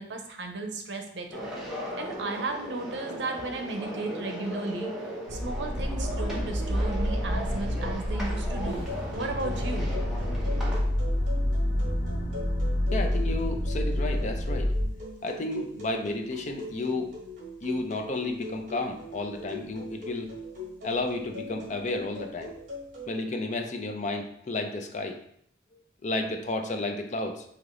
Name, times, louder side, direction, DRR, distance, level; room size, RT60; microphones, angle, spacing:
voice 1, 0.0-1.5 2.0-8.9 9.1-9.9, right 2 dB, 65° right, 4 dB, 0.7 m, -35 dB
sound 1, 1.3-10.8, equal, ahead, 1.0 m, -37 dB
sound 2, 5.3-14.8, left 1 dB, 65° left, 0.8 m, -28 dB
sound 3, 8.6-23.1, left 2 dB, 40° right, 1.2 m, -41 dB
voice 2, 12.9-14.7 15.2-17.1 17.6-20.3 20.8-22.5 23.1-25.2 25.7-27.4, left 2 dB, 40° left, 4 dB, 0.5 m, -32 dB
4.8 x 2.9 x 3.7 m, 0.68 s
head